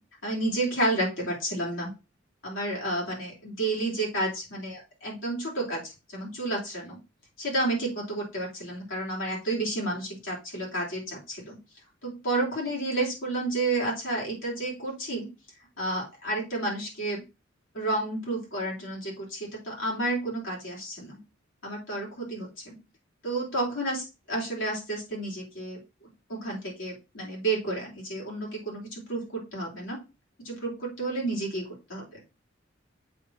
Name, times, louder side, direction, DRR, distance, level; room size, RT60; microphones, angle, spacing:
voice 1, 0.2-1.9 2.4-7.0 7.4-11.6 12.0-15.3 15.8-17.2 17.7-21.2 21.6-22.7 23.2-25.8 26.3-30.0 30.4-31.6 31.9-32.2, right 2 dB, 80° left, -4 dB, 3.4 m, -31 dB
7.7 x 3.0 x 6.2 m, 0.29 s
head